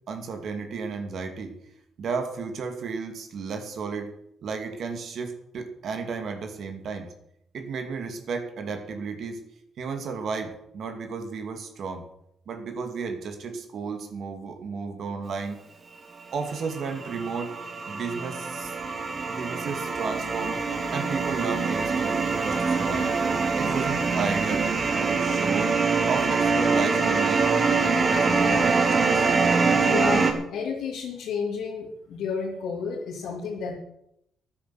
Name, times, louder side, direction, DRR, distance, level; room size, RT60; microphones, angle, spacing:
voice 1, 0.1-1.5 2.0-4.1 4.4-7.1 7.5-9.4 9.8-12.1 12.5-15.6 16.3-17.5 17.9-18.8 19.3-20.6 20.9-23.1 23.6-27.5 27.8-29.3, right 5 dB, 60° right, 6 dB, 2.5 m, -33 dB
sound 1, 16.5-30.3, right 4 dB, 40° right, 2.7 m, -24 dB
voice 2, 29.8-33.7, left 5 dB, 80° left, -3 dB, 2.8 m, -31 dB
12.5 x 9.8 x 7.8 m, 0.76 s
cardioid pair, 90°, 0 cm